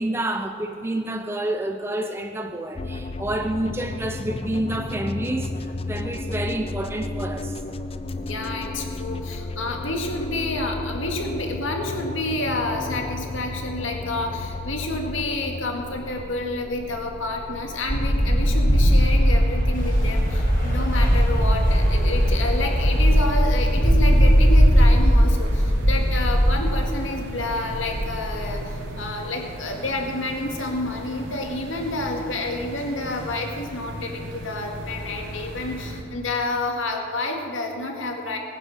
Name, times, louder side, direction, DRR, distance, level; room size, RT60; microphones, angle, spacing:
voice 1, 0.0-7.6, right 1 dB, 10° right, 0.6 m, -28 dB
sound 1, 2.8-20.5, left 2 dB, 30° left, 0.5 m, -34 dB
voice 2, 8.1-28.6 29.0-38.4, left 2 dB, 80° left, 2.0 m, -29 dB
sound 2, 17.9-27.3 27.6-28.9, equal, 45° left, 4.3 m, -18 dB
sound 3, 19.7-36.0, equal, 80° right, 2.5 m, -38 dB
19.5 x 9.7 x 6.7 m
head